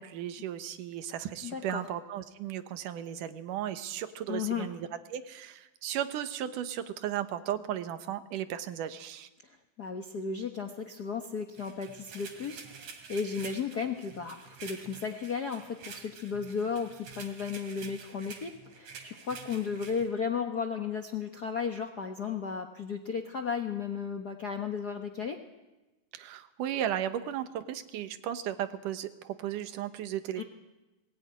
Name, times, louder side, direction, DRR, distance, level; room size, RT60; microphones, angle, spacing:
voice 1, 0.0-9.3 26.1-30.4, right 10 dB, 85° right, 10 dB, 2.7 m, -35 dB
voice 2, 1.4-1.8 4.3-4.7 9.8-25.4 30.4-30.5, left 6 dB, 60° left, 4 dB, 1.0 m, -34 dB
sound 1, 11.6-20.1, right 6 dB, 65° right, 3.6 m, -48 dB
20.5 x 18.5 x 9.6 m, 1.1 s
omnidirectional pair, 3.7 m